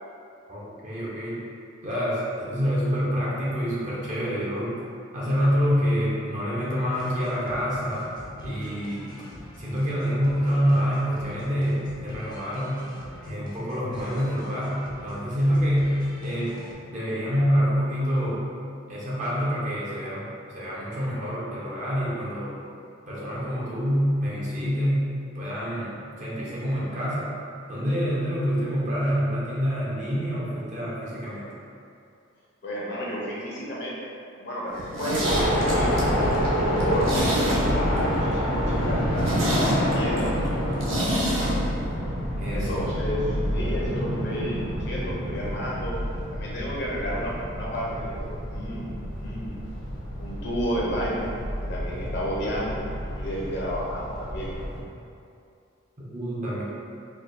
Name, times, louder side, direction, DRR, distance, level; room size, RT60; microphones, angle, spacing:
voice 1, 0.5-1.4 1.8-4.8 5.1-8.1 8.4-9.1 9.6-12.9 13.2-18.4 18.9-22.6 23.1-25.1 25.3-27.3 27.7-31.5 40.6-41.1 42.4-42.7 43.0-43.2 56.1-56.6, equal, 35° right, -7 dB, 0.7 m, -27 dB
sound 1, 6.9-16.7, left 1 dB, 20° left, 0.4 m, -44 dB
voice 2, 32.6-34.0 34.4-36.0 36.6-39.4 39.7-40.3 42.5-46.0 46.3-49.6 50.2-51.3 51.6-52.8 53.1-54.5, equal, 55° left, -5 dB, 0.7 m, -31 dB
Zipper (clothing), 34.7-38.0 38.3-38.4 38.8-38.9 39.1-41.5 41.8-41.9, right 1 dB, 75° right, 0.7 m, -28 dB
sound 2, 35.2-54.8, equal, 80° left, 1.1 m, -28 dB
4.4 x 2.3 x 2.5 m, 2.5 s
head